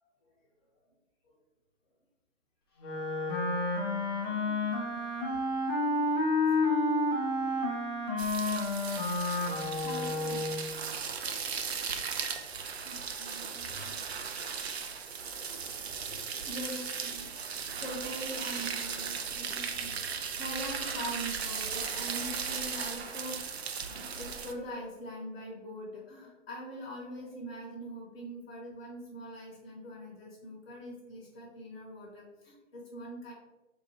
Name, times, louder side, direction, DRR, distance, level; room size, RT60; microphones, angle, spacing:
Wind instrument woodwind instrument, 2.8-10.7, left 2 dB, 20° left, 0.5 m, -30 dB
voice 1, 4.3-4.8 9.8-11.1 11.9-12.1 12.8-14.1 15.5-16.1 16.4-33.3, equal, 50° left, -4 dB, 1.0 m, -43 dB
sound 1, 8.2-24.5, right 6 dB, 55° right, 0.5 m, -37 dB
2.8 x 2.4 x 4.1 m, 1.1 s
figure-of-eight pair, 135°, 38 cm